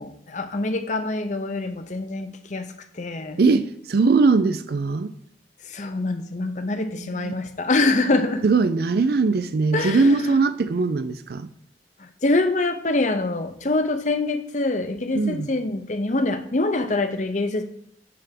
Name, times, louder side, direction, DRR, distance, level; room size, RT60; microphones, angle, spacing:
voice 1, 0.0-3.4 5.6-8.4 9.7-10.4 12.0-17.6, left 2 dB, 45° left, 0.7 m, -25 dB
voice 2, 3.4-5.1 7.0-7.3 8.4-11.5 15.2-15.5, right 4 dB, 60° right, 0.4 m, -21 dB
8.5 x 3.4 x 5.9 m
head